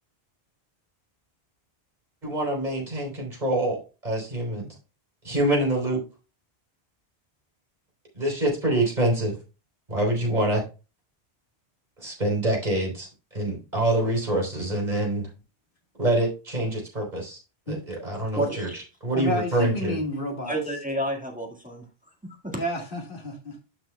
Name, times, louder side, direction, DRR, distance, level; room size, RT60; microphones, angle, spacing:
voice 1, 2.2-4.7 5.2-6.0 8.2-9.4 9.9-10.6 12.0-13.1 13.3-15.3 16.0-17.4 17.7-18.7 19.0-20.0, right 1 dB, 40° right, -1 dB, 3.7 m, -25 dB
voice 2, 18.3-18.8 20.4-21.9 22.2-22.6, right 1 dB, 5° right, 0 dB, 1.7 m, -30 dB
voice 3, 19.1-20.6 22.6-23.6, left 1 dB, 55° left, 2 dB, 2.0 m, -30 dB
12.0 x 5.9 x 2.2 m, 0.32 s
omnidirectional pair, 1.1 m